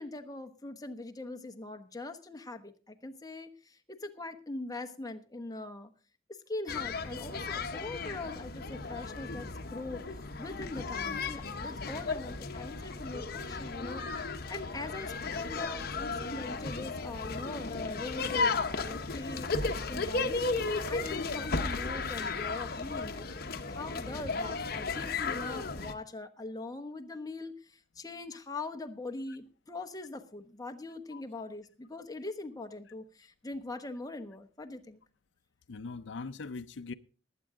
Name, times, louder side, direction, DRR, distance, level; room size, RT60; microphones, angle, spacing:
voice 1, 0.0-5.9 6.3-23.3 23.7-35.0, left 2 dB, 20° left, 1.1 m, -42 dB
sound 1, 6.7-25.9, left 4 dB, 55° left, 1.0 m, -35 dB
voice 2, 35.7-36.9, left 4 dB, 75° left, 0.5 m, -41 dB
19.5 x 8.8 x 3.7 m
head